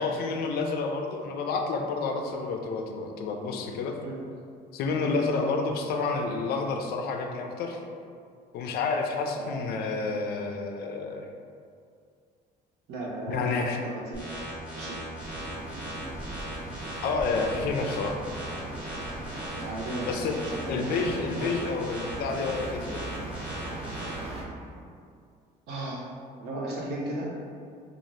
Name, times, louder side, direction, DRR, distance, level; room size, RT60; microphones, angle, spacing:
voice 1, 0.0-4.0 4.7-7.8 8.5-11.2 13.3-13.8 17.0-18.1 20.1-20.4 20.7-23.1, left 4 dB, 70° left, 3 dB, 0.4 m, -29 dB
voice 2, 9.4-9.7 12.9-14.3 14.8-15.1 19.6-20.3 20.6-21.2 25.7-26.0 26.4-27.3, right 2 dB, 80° right, -3 dB, 0.7 m, -36 dB
sound 1, 14.1-24.1, right 1 dB, 5° right, 0.8 m, -38 dB
sound 2, 15.2-24.4, right 2 dB, 35° right, 0.5 m, -40 dB
2.6 x 2.4 x 3.1 m, 2.3 s
cardioid pair, 110°, 17 cm